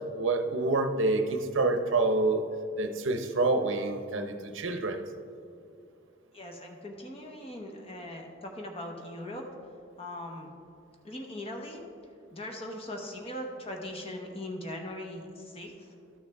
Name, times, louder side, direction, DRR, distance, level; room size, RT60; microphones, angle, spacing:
voice 1, 0.1-2.4 2.8-5.0, right 3 dB, 70° right, 6 dB, 0.7 m, -27 dB
voice 2, 6.3-9.4 10.0-10.5 11.0-11.8 12.3-15.9, left 1 dB, 30° left, 2 dB, 1.0 m, -40 dB
12.5 x 6.5 x 3.4 m, 2.3 s
head